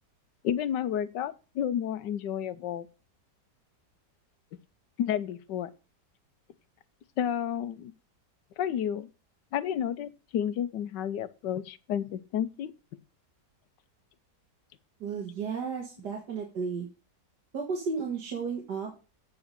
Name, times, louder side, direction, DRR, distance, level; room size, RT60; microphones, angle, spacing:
voice 1, 0.4-2.8 5.0-5.7 7.2-7.9 8.6-9.1 9.5-12.7, left 9 dB, 80° left, 1.4 m, -31 dB
voice 2, 15.0-16.9 17.5-18.9, right 5 dB, 70° right, 2.3 m, -33 dB
8.4 x 5.4 x 6.6 m
omnidirectional pair, 1.9 m